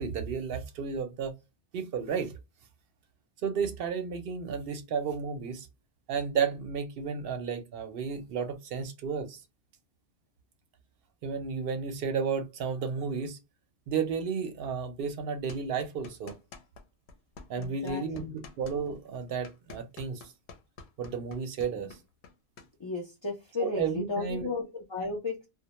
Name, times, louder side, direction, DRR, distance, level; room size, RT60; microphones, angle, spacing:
voice 1, 0.0-1.3 1.7-2.3 3.4-5.7 6.1-9.4 11.2-13.4 13.9-16.3 17.5-20.3 21.0-22.0 23.6-24.5, right 6 dB, 65° right, 0.7 m, -32 dB
sound 1, 15.5-16.8 17.1-22.7, left 4 dB, 90° left, 0.9 m, -49 dB
voice 2, 17.6-18.4 21.7-21.9 22.8-25.4, left 4 dB, 35° left, 0.5 m, -35 dB
2.1 x 2.1 x 2.8 m
omnidirectional pair, 1.1 m